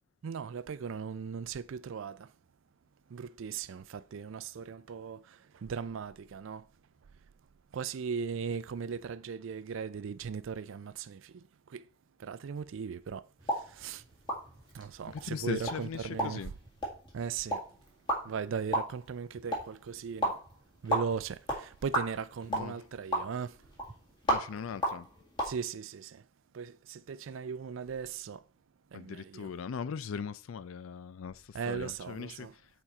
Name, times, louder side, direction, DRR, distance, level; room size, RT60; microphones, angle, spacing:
voice 1, 0.2-2.3 3.1-6.7 7.7-11.8 12.2-14.0 14.7-16.4 17.1-17.6 18.2-20.4 20.8-23.6 25.4-26.2 26.5-28.4 28.9-29.5 31.5-32.5, right 6 dB, 70° right, 0.4 m, -38 dB
sound 1, 13.4-25.5, right 1 dB, 25° left, 1.8 m, -36 dB
voice 2, 15.1-16.5 22.5-22.8 24.3-25.1 28.9-32.5, left 6 dB, 80° left, 0.4 m, -39 dB
6.9 x 4.3 x 4.3 m
head